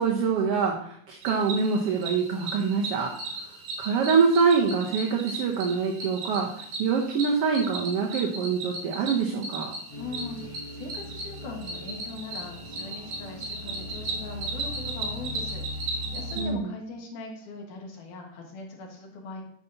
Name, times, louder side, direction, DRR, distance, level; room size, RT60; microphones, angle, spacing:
voice 1, 0.0-3.1 3.8-6.5 6.8-9.7 16.4-16.6, right 5 dB, 65° right, 0 dB, 1.5 m, -25 dB
Cricket, 1.2-16.4, right 2 dB, 90° right, 3.4 m, -36 dB
voice 2, 9.7-19.4, left 3 dB, 80° left, 0 dB, 3.1 m, -40 dB
sound 1, 9.9-16.5, left 2 dB, 45° left, 3.0 m, -40 dB
9.4 x 5.8 x 4.0 m, 0.65 s
omnidirectional pair, 3.5 m